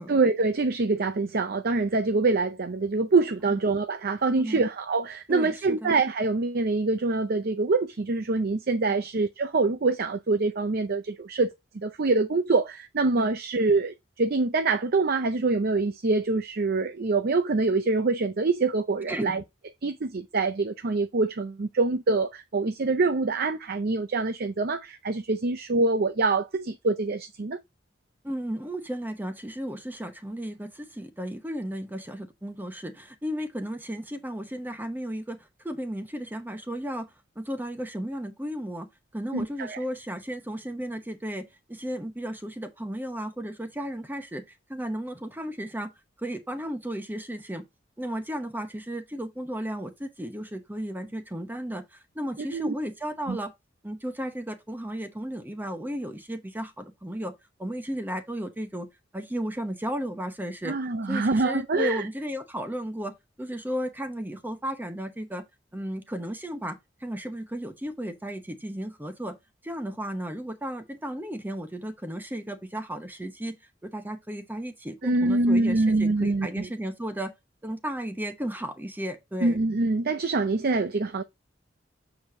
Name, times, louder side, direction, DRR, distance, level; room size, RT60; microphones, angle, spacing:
voice 1, 0.1-19.4 19.8-27.6 39.3-39.8 52.5-52.7 53.3-53.4 60.6-62.1 75.0-76.7 79.4-81.2, right 3 dB, 55° right, 0.6 m, -25 dB
voice 2, 4.4-4.7 5.3-5.9 8.9-9.0 13.2-13.4 19.1-19.4 28.2-37.1 37.4-38.9 39.1-44.4 44.7-45.9 46.2-47.6 48.0-53.5 53.8-57.3 57.6-58.9 59.1-60.7 61.0-65.4 65.7-66.8 67.0-69.3 69.6-73.6 73.8-77.3 77.6-79.6, equal, 10° right, 0.9 m, -34 dB
7.2 x 4.9 x 2.6 m
head